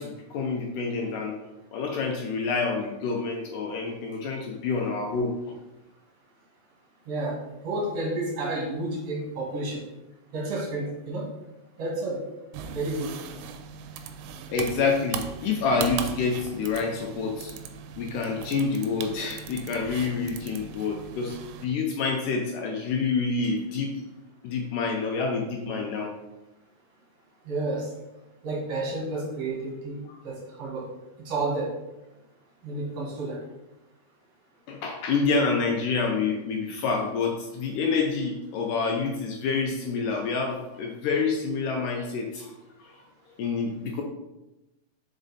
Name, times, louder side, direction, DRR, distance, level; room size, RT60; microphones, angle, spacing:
voice 1, 0.0-1.4 1.7-5.6 14.5-17.5 18.0-21.4 21.6-23.9 24.4-26.1 30.1-30.2 34.7-42.5 42.8-42.9 43.4-44.0, left 4 dB, 80° left, 0 dB, 1.8 m, -27 dB
voice 2, 7.1-9.8 10.3-11.3 11.8-12.3 12.7-13.4 27.4-27.9 28.4-30.9 31.2-31.8 32.6-33.4, right 2 dB, 55° right, -3 dB, 2.0 m, -31 dB
sound 1, 12.5-21.6, right 7 dB, 90° right, 2.6 m, -39 dB
5.1 x 5.0 x 4.0 m, 0.98 s
omnidirectional pair, 4.5 m